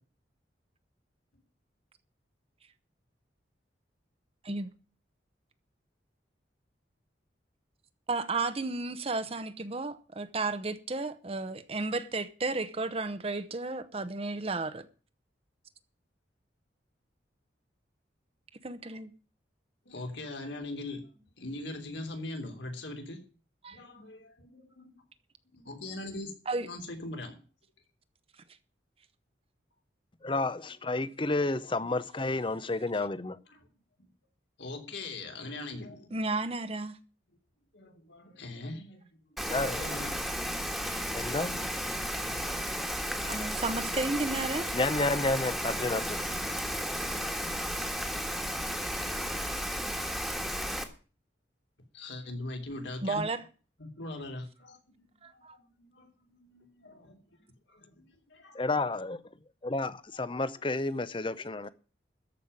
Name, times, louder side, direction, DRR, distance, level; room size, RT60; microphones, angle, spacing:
voice 1, 8.1-14.9 18.6-19.1 26.5-26.7 36.1-37.0 43.3-44.7 53.0-53.4 55.2-55.5, right 3 dB, 30° right, 0.8 m, -33 dB
voice 2, 19.9-23.2 23.7-25.0 25.5-26.3 26.6-27.4 33.2-33.7 34.0-34.1 34.6-36.2 37.7-39.1 39.4-40.2 51.9-53.2 53.8-55.1 55.3-57.2 57.4-58.7, left 2 dB, 75° left, 3.3 m, -42 dB
voice 3, 30.2-33.4 39.4-39.9 41.1-41.6 44.7-46.2 58.5-59.2 59.6-61.7, left 2 dB, 25° left, 0.7 m, -30 dB
Rain, 39.4-50.8, equal, ahead, 1.5 m, -33 dB
13.5 x 5.6 x 9.5 m
head